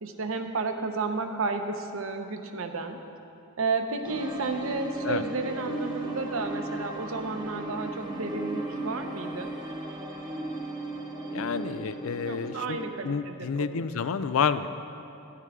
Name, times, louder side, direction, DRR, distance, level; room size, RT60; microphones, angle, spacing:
voice 1, 0.0-3.0 3.6-9.5 12.3-13.8, right 3 dB, 80° right, 6 dB, 0.8 m, -32 dB
sound 1, 4.0-12.9, right 2 dB, 20° right, 1.0 m, -36 dB
voice 2, 11.3-12.8 13.0-14.7, left 6 dB, 85° left, 12 dB, 0.4 m, -29 dB
13.5 x 9.5 x 3.6 m, 2.7 s
head